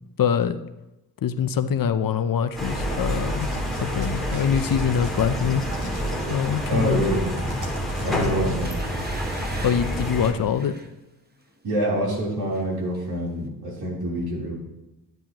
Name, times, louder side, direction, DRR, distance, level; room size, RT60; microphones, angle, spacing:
voice 1, 0.2-0.6 1.2-3.5 3.8-5.6 6.3-7.1 8.0-8.6 9.6-10.7, left 8 dB, 60° left, 11 dB, 0.6 m, -24 dB
sound 1, 2.6-10.3, equal, ahead, 2.2 m, -28 dB
sound 2, 3.4-8.9, equal, 50° right, 2.5 m, -37 dB
voice 2, 6.7-7.2 8.0-8.8 11.6-14.5, right 1 dB, 75° right, -4 dB, 3.6 m, -26 dB
sound 3, 8.6-10.9 11.4-11.6 11.9-12.7 12.9-13.0, right 2 dB, 25° right, 0.9 m, -42 dB
10.5 x 9.2 x 3.0 m, 0.97 s
cardioid pair, 85°, 38 cm